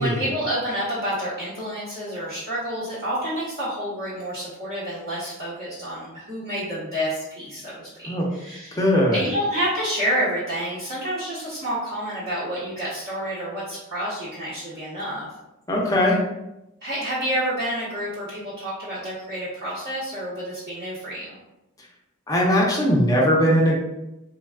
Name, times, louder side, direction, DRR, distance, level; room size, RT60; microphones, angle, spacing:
voice 1, 0.0-8.8 9.1-15.3 16.8-21.4, equal, 45° right, -11 dB, 0.9 m, -29 dB
voice 2, 8.7-9.2 15.7-16.2 22.3-23.8, equal, 15° left, -2 dB, 0.5 m, -19 dB
3.3 x 2.2 x 2.3 m, 0.91 s
head